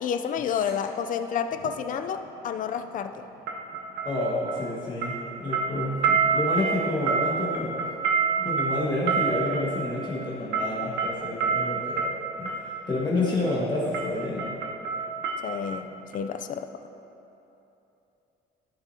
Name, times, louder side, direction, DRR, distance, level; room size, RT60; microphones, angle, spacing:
voice 1, 0.0-3.2 15.4-16.7, left 7 dB, 50° left, 9 dB, 0.5 m, -30 dB
sound 1, 1.5-1.7 3.5-4.8 5.0-12.7 13.5-13.7 13.9-15.8 16.1-16.2, right 5 dB, 85° right, 0.9 m, -28 dB
voice 2, 4.0-7.9 8.4-14.6, left 2 dB, 25° left, -5 dB, 1.5 m, -29 dB
14.5 x 6.1 x 2.8 m, 3.0 s
cardioid pair, 110°, 17 cm